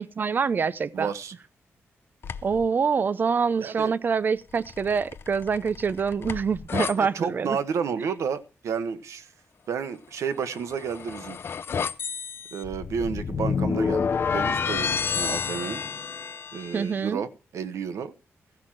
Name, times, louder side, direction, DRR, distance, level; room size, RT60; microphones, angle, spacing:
voice 1, 0.0-1.1 2.4-7.6 8.0-8.1 16.7-17.2, right 5 dB, 40° right, 0.5 m, -25 dB
voice 2, 0.9-1.3 3.6-3.9 7.0-9.3 9.7-11.4 12.5-15.8 16.5-18.1, right 6 dB, 90° right, 1.1 m, -31 dB
sound 1, 2.2-2.7 4.5-6.9 10.4-16.8, left 6 dB, 50° left, 0.6 m, -30 dB
15.0 x 6.0 x 7.5 m
wide cardioid pair, 145°, 5 cm